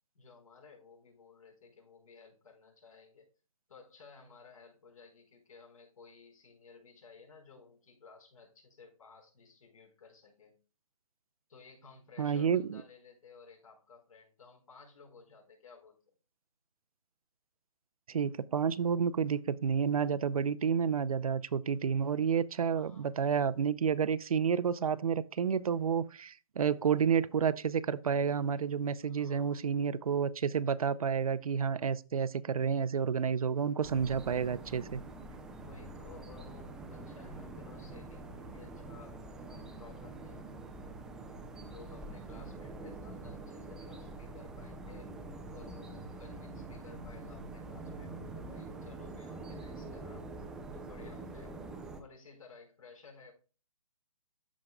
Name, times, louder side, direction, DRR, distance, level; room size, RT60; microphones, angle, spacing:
voice 1, 0.1-3.3 3.7-10.6 11.5-16.1 22.7-23.1 29.0-29.6 35.6-40.8 41.6-45.1 45.5-50.3 50.7-51.7 52.0-53.3, left 4 dB, 70° left, 4.7 m, -56 dB
voice 2, 12.2-12.8 18.1-35.0, right 7 dB, 75° right, 0.6 m, -30 dB
sound 1, 33.8-52.0, right 2 dB, 5° right, 0.4 m, -45 dB
13.5 x 5.2 x 2.3 m
hypercardioid pair, 155°, 18 cm